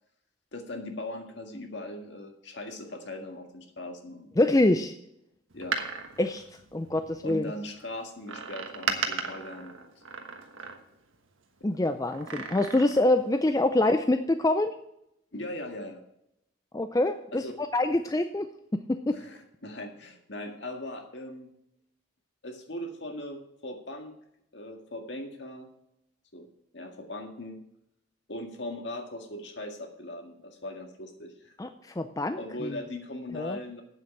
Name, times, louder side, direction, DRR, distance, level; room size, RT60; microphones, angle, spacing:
voice 1, 0.5-4.3 5.5-6.0 7.2-9.9 15.3-16.0 17.3-17.5 19.1-21.5 22.4-24.2 24.5-25.7 26.3-26.5 26.7-27.6 28.3-31.6 32.3-33.8, left 1 dB, 60° left, 4 dB, 1.9 m, -39 dB
voice 2, 4.4-4.9 6.2-6.4 6.7-7.5 11.6-14.7 16.7-17.4 17.7-18.5 18.9-19.2 31.6-32.8 33.4-33.6, left 2 dB, 15° left, 8 dB, 0.4 m, -25 dB
Door, 5.5-7.3 8.3-11.1 12.1-13.2 13.5-13.6, right 5 dB, 90° right, 1.3 m, -36 dB
8.7 x 7.7 x 7.1 m, 0.79 s
head